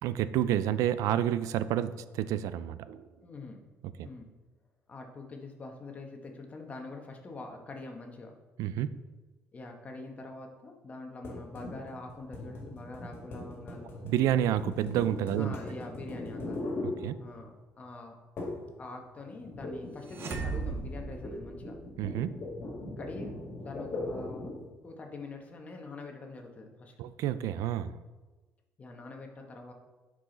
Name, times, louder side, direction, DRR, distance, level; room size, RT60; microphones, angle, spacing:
voice 1, 0.0-3.0 4.0-4.1 8.6-8.9 14.0-15.5 16.8-17.2 22.0-22.4 27.0-28.0, right 11 dB, 75° right, 14 dB, 0.4 m, -29 dB
voice 2, 3.2-3.6 4.0-4.3 4.9-8.3 9.5-13.9 15.3-16.7 17.2-18.1 18.8-21.8 23.0-24.5 24.8-26.9 28.8-29.7, left 3 dB, 25° left, 3 dB, 1.1 m, -44 dB
sound 1, 11.2-17.6 18.4-18.7 19.0-24.7, left 2 dB, 45° left, 2.0 m, -40 dB
sound 2, 20.1-22.1, right 4 dB, 45° right, 0.9 m, -37 dB
10.0 x 4.9 x 3.9 m, 1.2 s
cardioid pair, 150°, 6 cm